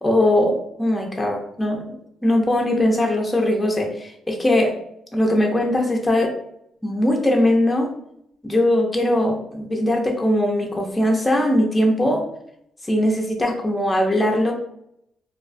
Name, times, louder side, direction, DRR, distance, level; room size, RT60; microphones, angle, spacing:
voice 1, 0.0-2.0 2.2-4.7 5.1-6.3 6.8-7.9 8.4-12.2 12.9-14.5, left 1 dB, 10° left, 0 dB, 0.5 m, -20 dB
2.4 x 2.1 x 2.5 m, 0.74 s
cardioid pair, 90°, 0 cm